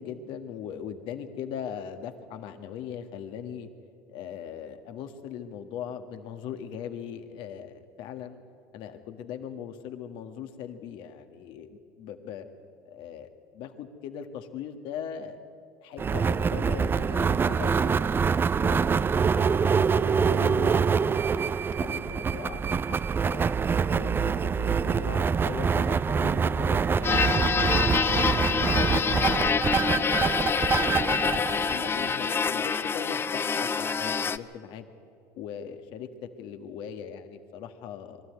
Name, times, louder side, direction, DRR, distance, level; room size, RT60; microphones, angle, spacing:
voice 1, 0.0-3.7 4.1-8.4 8.7-12.5 12.9-15.4 15.8-18.1 18.6-20.9 21.3-23.6 23.9-27.5 28.4-34.8 35.3-38.2, left 8 dB, 65° left, 7 dB, 1.7 m, -40 dB
sound 1, 16.0-32.5, right 6 dB, 25° right, 0.4 m, -25 dB
sound 2, 27.0-34.4, left 6 dB, 25° left, 0.6 m, -26 dB
23.0 x 13.0 x 9.5 m, 2.4 s
supercardioid pair, 90°, 9 cm